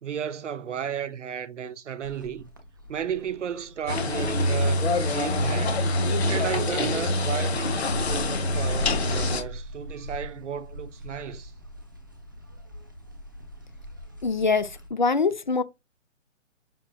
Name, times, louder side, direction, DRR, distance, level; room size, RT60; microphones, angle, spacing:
voice 1, 0.0-2.5 2.9-5.8 6.3-11.5, right 8 dB, 65° right, 0.6 m, -34 dB
sound 1, 2.0-14.9, left 1 dB, 15° right, 0.5 m, -40 dB
sound 2, 3.9-9.4, left 1 dB, 55° left, 1.2 m, -25 dB
voice 2, 14.2-15.6, left 4 dB, 40° left, 0.5 m, -24 dB
5.9 x 2.6 x 2.3 m
hypercardioid pair, 165°, 38 cm